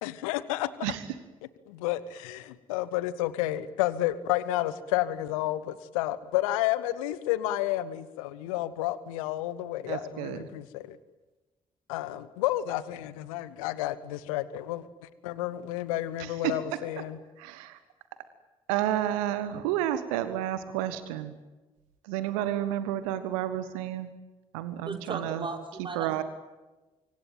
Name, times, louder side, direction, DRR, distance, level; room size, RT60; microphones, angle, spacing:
voice 1, 0.0-0.7 1.7-11.0 11.9-14.9 15.2-17.2, left 14 dB, 70° left, 17 dB, 1.1 m, -31 dB
voice 2, 9.9-10.4 16.4-16.5 17.4-17.7 18.7-21.3 22.1-24.1 24.5-25.4 25.9-26.2, right 12 dB, 70° right, 12 dB, 1.5 m, -30 dB
voice 3, 24.8-26.2, right 3 dB, 30° right, 4 dB, 4.7 m, -37 dB
25.5 x 24.5 x 9.1 m, 1.1 s
figure-of-eight pair, 40°, 18 cm